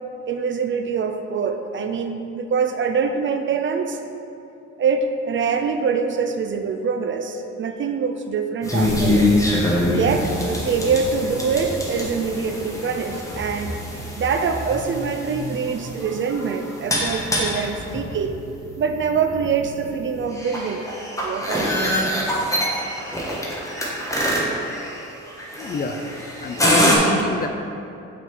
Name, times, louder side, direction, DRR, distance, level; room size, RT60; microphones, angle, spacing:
voice 1, 0.3-4.0 4.8-9.4 9.9-13.8 14.2-18.3 18.8-22.2, right 5 dB, 40° right, 6 dB, 0.4 m, -24 dB
sound 1, 8.6-27.0, left 1 dB, 10° left, 1.2 m, -25 dB
voice 2, 25.6-26.0 26.4-27.5, left 4 dB, 30° left, 5 dB, 0.4 m, -28 dB
5.8 x 3.7 x 4.5 m, 2.7 s
cardioid pair, 90°, 30 cm